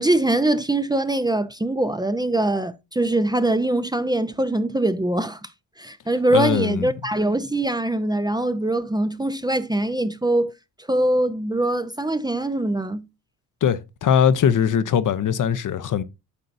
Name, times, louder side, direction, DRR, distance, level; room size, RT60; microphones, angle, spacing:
voice 1, 0.0-5.4 5.8-10.5 10.9-13.1, right 1 dB, 10° right, 0.7 m, -22 dB
voice 2, 6.3-6.9 13.6-16.0, left 8 dB, 50° left, 0.8 m, -20 dB
9.7 x 6.5 x 2.6 m
supercardioid pair, 70°, 41 cm